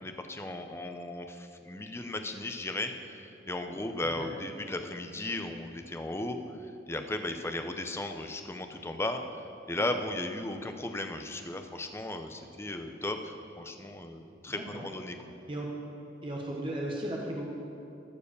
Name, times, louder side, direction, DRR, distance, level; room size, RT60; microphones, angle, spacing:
voice 1, 0.0-9.2 9.7-15.2, left 2 dB, 15° left, 6 dB, 0.5 m, -36 dB
voice 2, 14.5-14.9 15.5-15.7 16.2-17.5, right 1 dB, 30° right, -2 dB, 1.1 m, -36 dB
14.0 x 4.8 x 6.8 m, 2.7 s
head